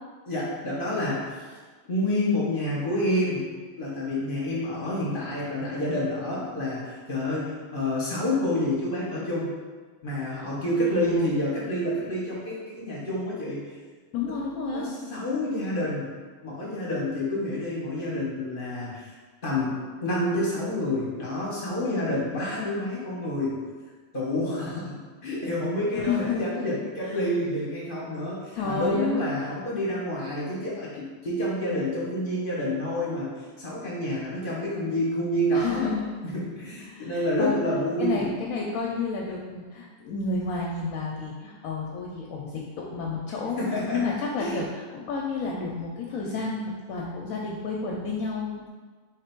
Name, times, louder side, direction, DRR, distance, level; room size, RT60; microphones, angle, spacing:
voice 1, 0.3-1.4 1.9-3.5 3.8-9.5 10.0-13.6 14.7-16.1 16.4-19.1 19.4-23.5 24.1-25.0 25.2-35.9 36.2-38.3 43.6-44.0 44.4-44.6, left 1 dB, 40° left, -6 dB, 1.1 m, -28 dB
voice 2, 10.9-11.3 14.1-14.9 25.9-26.4 27.0-27.2 28.5-29.1 35.5-36.1 36.9-37.6 38.0-43.6 43.9-48.7, left 4 dB, 75° left, -2 dB, 1.0 m, -31 dB
3.6 x 3.3 x 4.4 m, 1.4 s
omnidirectional pair, 1.6 m